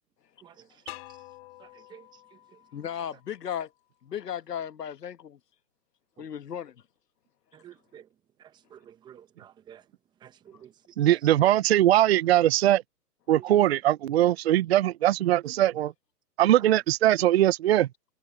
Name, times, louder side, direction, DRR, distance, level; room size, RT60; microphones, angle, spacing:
voice 1, 0.4-1.0 1.6-2.6 6.2-6.3 7.5-8.1 8.4-9.8 10.2-10.9 13.3-13.6 16.6-16.7, right 10 dB, 10° right, 0.9 m, -50 dB
sound 1, 0.9-3.8, left 19 dB, 40° left, 4.6 m, -48 dB
voice 2, 2.7-3.7 4.0-5.4 6.2-6.7, left 9 dB, 80° left, 1.4 m, -35 dB
voice 3, 11.0-12.8 13.3-15.9 16.4-17.9, right 13 dB, 40° right, 0.7 m, -21 dB
hypercardioid pair, 145°, 48 cm